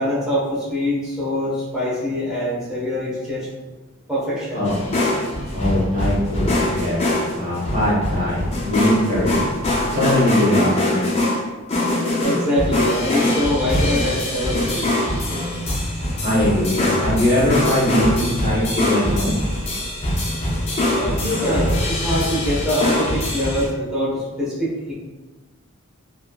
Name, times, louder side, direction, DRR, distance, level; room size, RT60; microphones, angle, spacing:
voice 1, 0.0-3.5 4.1-4.7 12.2-14.9 20.9-24.9, left 1 dB, 5° right, -9 dB, 0.8 m, -24 dB
sound 1, 4.6-23.7, left 1 dB, 30° left, 0.4 m, -23 dB
voice 2, 5.5-7.0 7.3-9.4 9.9-11.0 16.2-19.4, left 1 dB, 35° right, -8 dB, 1.1 m, -21 dB
3.1 x 2.3 x 2.2 m, 1.2 s
head